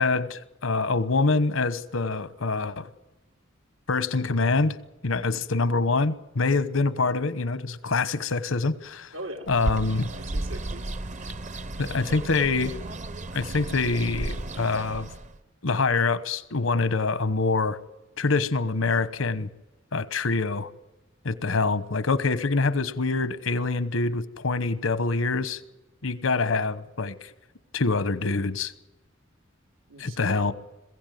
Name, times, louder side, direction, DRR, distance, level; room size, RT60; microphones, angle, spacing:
voice 1, 0.0-2.9 3.9-4.8 5.0-9.1 9.5-10.1 11.8-12.7 13.3-15.1 15.6-17.8 18.2-19.5 19.9-20.7 21.2-25.6 26.0-27.3 27.7-28.7 30.0-30.5, left 3 dB, 85° left, 1.1 m, -25 dB
voice 2, 9.1-9.5 10.1-10.9 29.9-30.5, right 1 dB, 90° right, 2.8 m, -40 dB
Bird, 9.5-15.4, right 2 dB, 35° right, 0.7 m, -34 dB
21.5 x 15.5 x 9.3 m
head